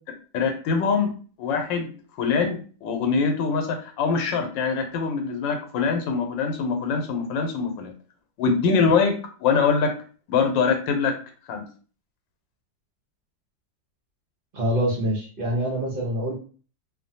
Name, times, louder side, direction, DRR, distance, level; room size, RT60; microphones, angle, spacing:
voice 1, 0.3-1.1 1.4-1.9 2.2-7.9 8.4-9.9 10.3-11.1 11.5-11.6, left 5 dB, 90° left, 5 dB, 1.3 m, -23 dB
voice 2, 14.5-16.3, equal, 60° right, -3 dB, 0.5 m, -25 dB
2.9 x 2.1 x 2.6 m, 0.40 s
omnidirectional pair, 2.0 m